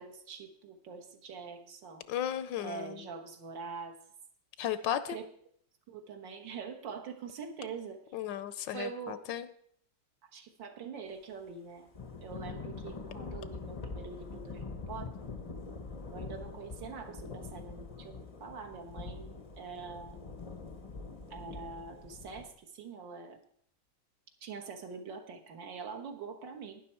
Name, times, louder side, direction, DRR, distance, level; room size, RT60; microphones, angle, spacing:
voice 1, 0.0-2.0 2.6-4.0 5.1-5.2 5.9-8.0 8.7-9.3 10.2-11.9 12.2-15.1 16.1-19.3 19.6-20.2 21.3-23.4 24.4-26.8, right 5 dB, 75° right, 3 dB, 2.0 m, -44 dB
voice 2, 2.1-3.0 4.6-5.2 8.1-9.5, left 10 dB, 80° left, 13 dB, 1.3 m, -35 dB
Thunder / Rain, 11.9-22.5, left 4 dB, 40° left, 0.4 m, -44 dB
12.0 x 9.9 x 4.3 m, 0.64 s
omnidirectional pair, 2.0 m